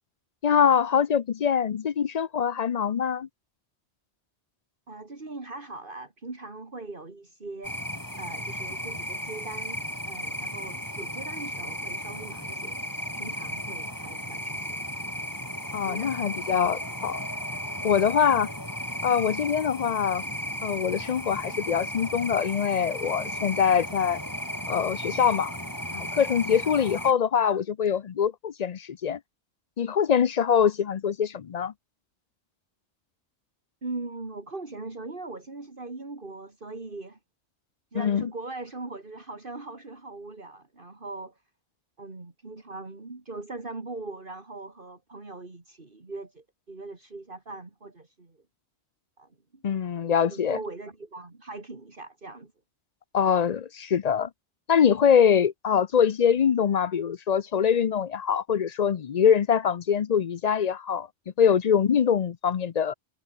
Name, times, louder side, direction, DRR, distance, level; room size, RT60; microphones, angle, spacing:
voice 1, 0.4-3.3 15.7-17.2 17.8-18.5 19.0-20.2 20.6-24.2 24.7-25.5 25.9-29.2 29.8-31.7 37.9-38.3 49.6-50.6 53.1-54.3 54.7-61.1 61.4-62.9, left 7 dB, 45° left, 0.6 m, -24 dB
voice 2, 4.9-12.8 13.1-14.8 15.8-16.1 33.8-37.2 37.9-41.3 42.0-48.4 49.2-49.6 50.3-52.5, right 3 dB, 50° right, 2.9 m, -40 dB
sound 1, 7.6-27.1, equal, 15° left, 6.4 m, -35 dB
omnidirectional pair, 1.2 m